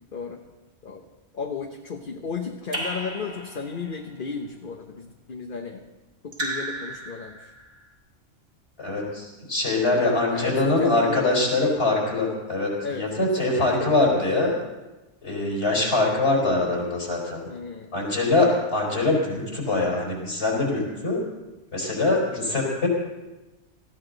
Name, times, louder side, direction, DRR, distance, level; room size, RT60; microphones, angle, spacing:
voice 1, 0.1-0.4 0.8-1.1 1.3-5.9 6.2-7.5 9.9-11.8 12.8-14.1 17.5-17.9, left 5 dB, 50° left, 3 dB, 1.1 m, -34 dB
Raindrop / Drip, 2.7-4.0 6.3-7.7, right 1 dB, 55° right, 2.5 m, -33 dB
voice 2, 8.8-14.5 15.2-17.4 17.9-21.2 21.7-22.9, left 2 dB, 65° left, -3 dB, 4.5 m, -23 dB
19.5 x 14.5 x 3.9 m, 1.1 s
omnidirectional pair, 1.2 m